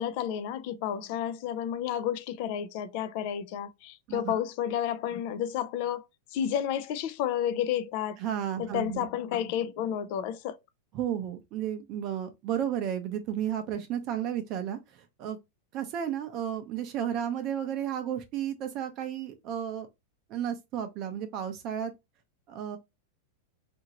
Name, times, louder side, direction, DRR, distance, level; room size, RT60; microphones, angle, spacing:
voice 1, 0.0-6.0 6.3-8.2 8.6-10.6, left 10 dB, 55° left, 0.4 m, -31 dB
voice 2, 8.2-9.1 10.9-15.4 15.7-19.9 20.3-21.9 22.5-22.8, right 9 dB, 40° right, 0.5 m, -33 dB
2.7 x 2.6 x 2.9 m
supercardioid pair, 140°, 0 cm